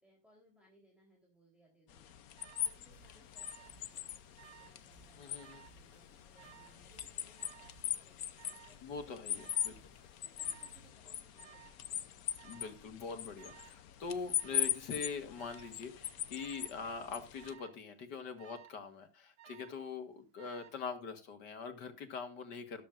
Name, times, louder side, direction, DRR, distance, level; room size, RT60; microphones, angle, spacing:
voice 1, 0.0-2.1 2.6-9.5 10.2-12.2, equal, ahead, -2 dB, 3.6 m, -68 dB
sound 1, 1.9-17.5, left 10 dB, 65° left, 1.2 m, -41 dB
Alarm, 2.4-2.8 3.4-3.8 4.1-4.8 5.4-5.8 6.4-6.8 7.4-7.8 8.4-8.8 9.4-9.8 10.4-10.8 11.4-11.8 12.4-12.8 13.4-13.8 14.4-14.8 15.4-15.8 16.4-16.8 17.4-17.8 18.4-18.8 19.4-19.9 20.4-20.9, right 12 dB, 60° right, 0.6 m, -58 dB
sound 2, 2.9-10.9, right 4 dB, 85° right, 3.8 m, -66 dB
voice 2, 5.2-5.6 8.8-9.7 12.4-22.8, left 5 dB, 90° left, 7 dB, 2.3 m, -43 dB
13.0 x 12.0 x 2.5 m, 0.26 s
omnidirectional pair, 1.8 m